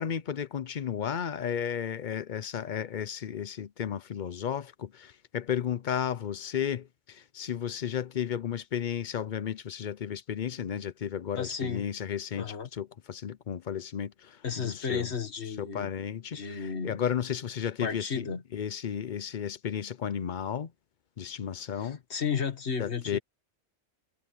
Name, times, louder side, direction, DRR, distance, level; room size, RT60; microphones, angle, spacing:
voice 1, 0.0-15.1 15.6-18.2 18.5-20.7 21.2-22.0 22.8-23.2, left 8 dB, 50° left, 0.7 m, -33 dB
voice 2, 11.4-11.8 12.3-12.7 14.4-15.9 16.3-17.0 17.8-18.4 21.8-23.2, left 6 dB, 65° left, 1.9 m, -33 dB
omnidirectional pair, 1.2 m